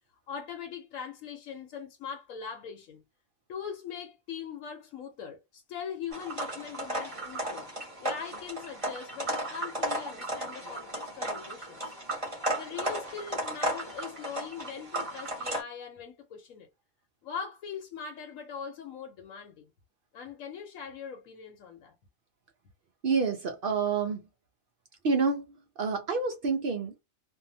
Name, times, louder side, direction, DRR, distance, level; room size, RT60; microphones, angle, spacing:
voice 1, 0.3-3.0 3.5-7.7 8.0-12.0 12.5-16.7 17.2-19.7 20.1-21.9, left 7 dB, 80° left, 1.1 m, -41 dB
sound 1, 6.1-15.6, right 1 dB, 25° right, 1.2 m, -35 dB
voice 2, 23.0-24.3 25.0-27.0, right 4 dB, 60° right, 0.6 m, -28 dB
2.7 x 2.3 x 2.6 m
omnidirectional pair, 1.4 m